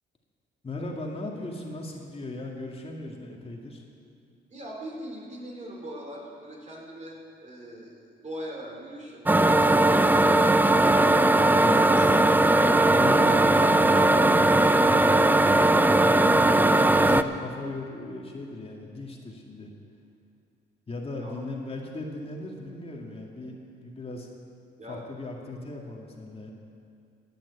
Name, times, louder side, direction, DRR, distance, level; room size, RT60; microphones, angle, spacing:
voice 1, 0.6-3.8 10.9-15.4 16.0-16.5 16.8-19.7 20.9-24.3 24.9-26.5, left 2 dB, 30° left, -1 dB, 2.1 m, -37 dB
voice 2, 4.5-11.5 21.1-21.4 24.8-25.1, right 1 dB, 35° right, -1 dB, 4.0 m, -42 dB
sound 1, 9.3-17.2, right 2 dB, 10° right, 0.5 m, -19 dB
14.5 x 9.3 x 8.4 m, 2.4 s
cardioid pair, 90°, 20 cm